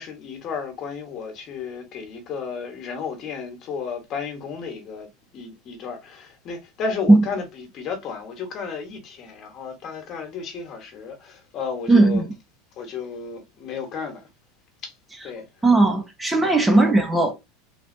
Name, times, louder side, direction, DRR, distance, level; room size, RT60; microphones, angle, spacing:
voice 1, 0.0-12.3 12.8-14.3 14.8-14.9 15.2-15.5 16.4-16.6, left 5 dB, 40° left, 1.3 m, -33 dB
voice 2, 11.9-12.3 15.6-17.3, right 2 dB, 10° right, 0.7 m, -17 dB
3.4 x 2.7 x 2.7 m
supercardioid pair, 135°, 0 cm